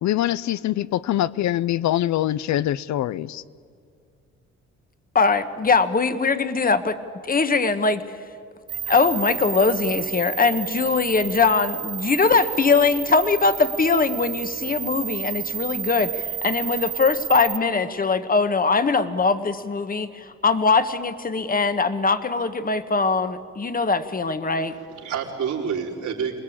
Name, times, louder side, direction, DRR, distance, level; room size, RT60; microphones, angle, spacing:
voice 1, 0.0-3.4, left 13 dB, 70° left, 0.6 m, -24 dB
voice 2, 5.1-7.0 7.2-8.0 8.9-24.7, left 4 dB, 30° left, 1.4 m, -21 dB
sound 1, 8.7-17.6, right 8 dB, 50° right, 1.0 m, -31 dB
voice 3, 24.5-26.4, right 7 dB, 75° right, 3.9 m, -29 dB
26.5 x 20.0 x 8.7 m
cardioid pair, 90°, 30 cm